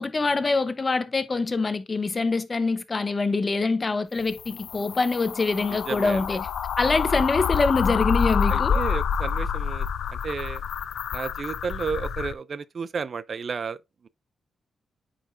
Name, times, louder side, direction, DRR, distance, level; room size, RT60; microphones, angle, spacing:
voice 1, 0.0-6.5 6.8-8.8, left 3 dB, 30° left, 0.8 m, -24 dB
sound 1, 4.2-12.3, left 7 dB, 85° left, 0.6 m, -27 dB
voice 2, 5.7-6.2 8.5-10.6 11.1-13.8, right 5 dB, 45° right, 0.4 m, -32 dB
8.7 x 5.0 x 2.5 m
cardioid pair, 120°, 0 cm